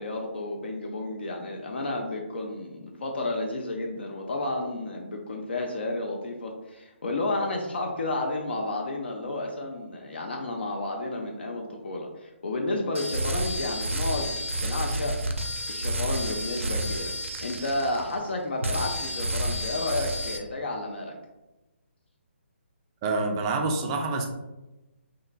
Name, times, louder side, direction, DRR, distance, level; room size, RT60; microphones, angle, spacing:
voice 1, 0.0-14.4 14.6-15.2 15.7-17.1 17.4-21.1, left 2 dB, 55° left, 1 dB, 0.4 m, -31 dB
sound 1, 12.9-18.3 18.6-20.4, equal, 85° right, 0.4 m, -30 dB
voice 2, 23.0-24.3, right 3 dB, 20° right, 3 dB, 0.3 m, -27 dB
2.8 x 2.5 x 2.3 m, 1.0 s
figure-of-eight pair, 140°, 7 cm